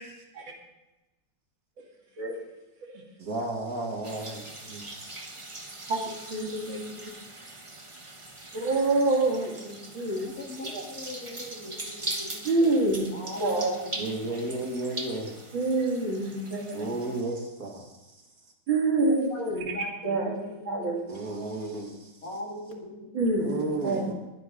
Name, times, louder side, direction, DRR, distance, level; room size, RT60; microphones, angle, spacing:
voice 1, 3.2-4.9 14.0-15.4 16.7-18.1 21.1-22.2 23.4-24.1, right 2 dB, 50° right, 0 dB, 2.5 m, -33 dB
sound 1, 4.0-17.2, right 2 dB, 20° right, 0.9 m, -41 dB
voice 2, 5.9-6.8 8.5-10.3 10.6-10.8 12.4-13.1 13.4-13.8 15.5-16.8 18.7-19.6 20.0-20.4 20.7-21.0 23.1-24.1, right 2 dB, 75° right, 0 dB, 3.1 m, -27 dB
voice 3, 10.4-12.5 13.1-14.4 19.0-20.9 22.2-23.4, left 2 dB, 45° left, 0 dB, 2.6 m, -40 dB
20.5 x 9.3 x 3.9 m, 1.0 s
omnidirectional pair, 2.1 m